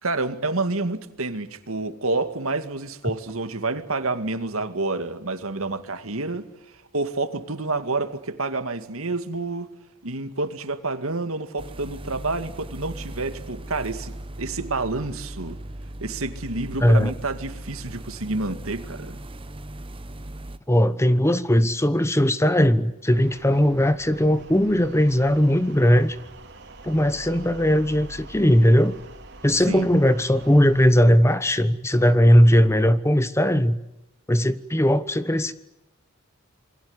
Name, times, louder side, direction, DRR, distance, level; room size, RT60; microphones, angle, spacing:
voice 1, 0.0-6.5 6.9-9.7 10.0-15.6 16.0-19.2 29.7-29.9, right 3 dB, 80° right, 2.2 m, -28 dB
sound 1, 11.6-20.6, right 1 dB, 25° right, 1.1 m, -38 dB
voice 2, 16.8-17.1 20.7-26.2 26.8-29.0 29.4-33.8 34.3-35.5, equal, 15° left, 1.0 m, -19 dB
sound 2, 23.1-30.9, right 2 dB, 55° right, 3.7 m, -44 dB
27.5 x 22.5 x 9.7 m
head